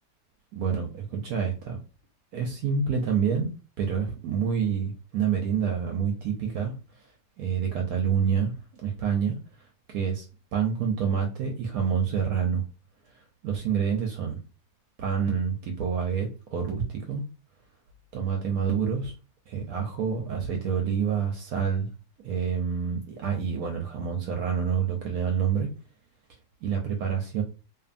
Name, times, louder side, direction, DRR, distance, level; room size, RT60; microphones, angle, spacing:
voice 1, 0.5-1.8 2.3-3.5 3.8-6.7 7.4-8.5 8.8-9.4 9.9-10.2 10.5-12.6 13.1-14.4 15.0-17.2 18.1-19.1 19.5-21.9 22.2-25.7 26.6-27.4, right 7 dB, 70° right, 0.9 m, -27 dB
2.6 x 2.5 x 2.4 m
omnidirectional pair, 1.8 m